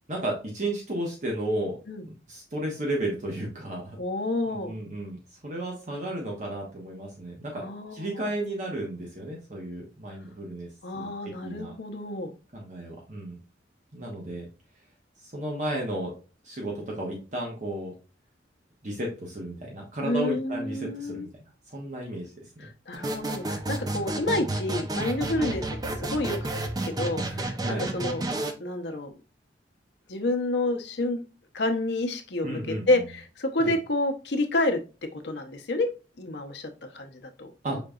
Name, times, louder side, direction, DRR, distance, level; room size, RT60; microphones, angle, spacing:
voice 1, 0.1-1.8 2.1-4.0 4.5-10.7 10.9-11.7 12.5-13.4 13.9-14.5 15.2-16.1 16.4-17.9 18.8-21.3 21.7-22.7 25.4-25.5 27.2-27.9 32.4-33.0 33.6-33.7 37.6-37.8, right 1 dB, 40° right, -1 dB, 1.0 m, -33 dB
voice 2, 4.0-4.7 7.5-8.2 10.8-12.3 20.0-21.3 22.6-25.7 25.9-26.4 26.8-28.2 28.6-29.1 30.1-31.2 31.5-34.8 35.1-35.9 36.2-37.8, left 2 dB, 65° left, 5 dB, 0.7 m, -29 dB
sound 1, 22.9-28.5, right 2 dB, 20° right, 0.5 m, -31 dB
5.2 x 3.8 x 2.3 m, 0.33 s
head